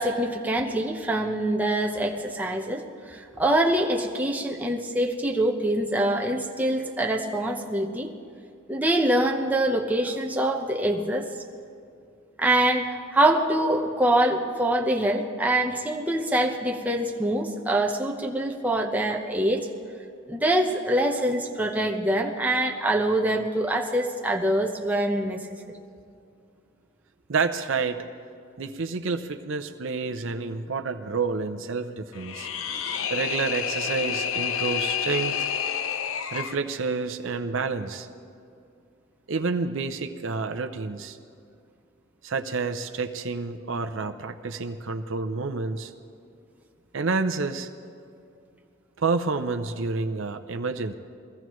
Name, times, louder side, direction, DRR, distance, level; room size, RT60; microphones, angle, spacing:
voice 1, 0.0-8.1 8.7-11.3 12.4-19.7 20.3-25.5, right 1 dB, 10° right, 1 dB, 0.9 m, -24 dB
voice 2, 27.3-28.0 28.6-32.5 33.1-35.5 36.3-38.1 39.3-41.2 42.2-45.9 46.9-47.7 49.0-50.9, right 4 dB, 65° right, 7 dB, 0.6 m, -29 dB
sound 1, 32.1-36.6, left 8 dB, 75° left, 0.6 m, -29 dB
21.5 x 16.0 x 3.1 m, 2.5 s
head